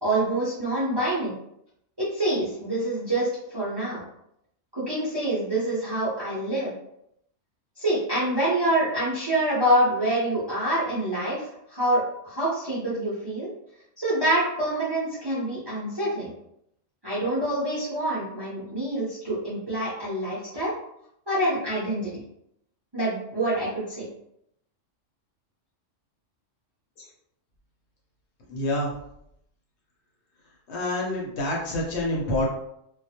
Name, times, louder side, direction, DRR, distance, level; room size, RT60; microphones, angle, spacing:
voice 1, 0.0-1.3 2.1-4.0 4.7-6.7 7.8-11.4 11.7-13.5 14.0-16.3 17.0-20.7 21.3-22.2 22.9-24.1, right 1 dB, 30° right, -8 dB, 0.5 m, -26 dB
voice 2, 28.5-28.9 30.7-32.5, left 1 dB, 65° left, -2 dB, 0.9 m, -27 dB
2.3 x 2.0 x 2.8 m, 0.76 s
omnidirectional pair, 1.3 m